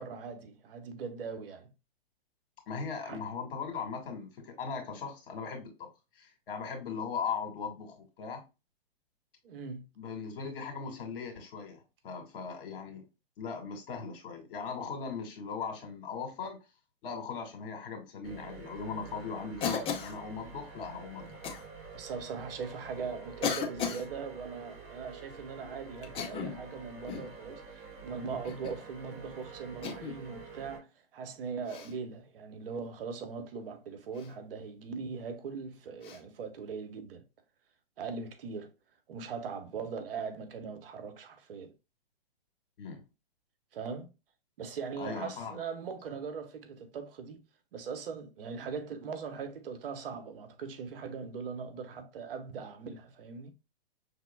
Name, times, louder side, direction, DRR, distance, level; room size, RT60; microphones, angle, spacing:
voice 1, 0.0-1.7 3.0-3.2 9.4-9.9 21.9-37.2 38.0-38.7 39.1-41.7 43.7-44.1 44.6-47.4 47.7-53.5, right 5 dB, 65° right, 1.1 m, -40 dB
voice 2, 2.7-5.9 6.2-8.4 10.0-13.0 13.4-16.6 17.0-21.4 42.8-43.0 45.0-45.6, left 5 dB, 60° left, 2.1 m, -39 dB
sound 1, 18.2-30.8, right 5 dB, 40° right, 2.5 m, -48 dB
Cough, 19.6-20.2 21.4-21.6 22.5-22.6 23.4-24.1 26.0-26.6 27.1-27.3 28.4-28.8 29.8-30.2 31.7-31.9 34.1-34.3 36.0-36.2, left 6 dB, 20° left, 0.6 m, -35 dB
5.9 x 3.5 x 2.3 m
hypercardioid pair, 130°, 31 cm